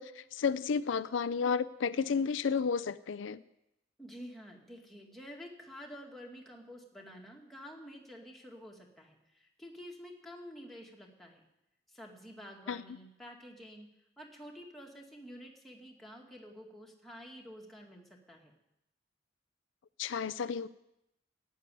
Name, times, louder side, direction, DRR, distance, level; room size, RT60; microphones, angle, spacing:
voice 1, 0.0-3.4 12.7-12.8 20.0-20.7, left 6 dB, 85° left, 14 dB, 0.5 m, -32 dB
voice 2, 4.0-11.4 11.9-13.9 14.2-18.6, equal, ahead, -1 dB, 2.1 m, -49 dB
13.0 x 8.2 x 9.9 m, 0.86 s
head